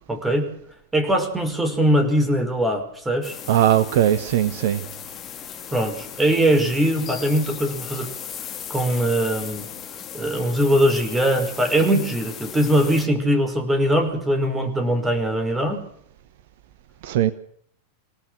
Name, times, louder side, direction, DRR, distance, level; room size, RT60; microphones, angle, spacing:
voice 1, 0.1-0.5 0.9-3.3 5.7-8.1 8.7-9.7 10.1-15.8, right 1 dB, 10° right, 7 dB, 5.4 m, -21 dB
sound 1, 3.2-13.1, left 9 dB, 30° left, 3.5 m, -37 dB
voice 2, 3.5-4.8 17.0-17.3, right 11 dB, 55° right, 14 dB, 1.1 m, -19 dB
27.5 x 18.0 x 6.3 m, 0.66 s
figure-of-eight pair, 90°, 0 cm